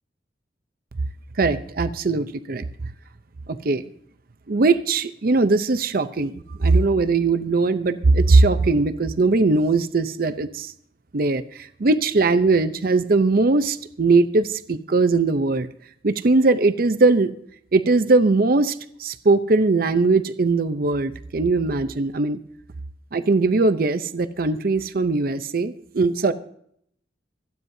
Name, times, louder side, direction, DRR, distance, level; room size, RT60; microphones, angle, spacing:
voice 1, 1.4-2.6 3.5-3.8 4.5-10.7 11.1-15.7 16.0-17.3 17.7-22.4 23.1-26.3, right 3 dB, 55° right, 11 dB, 0.6 m, -20 dB
25.5 x 9.4 x 2.7 m, 0.68 s
head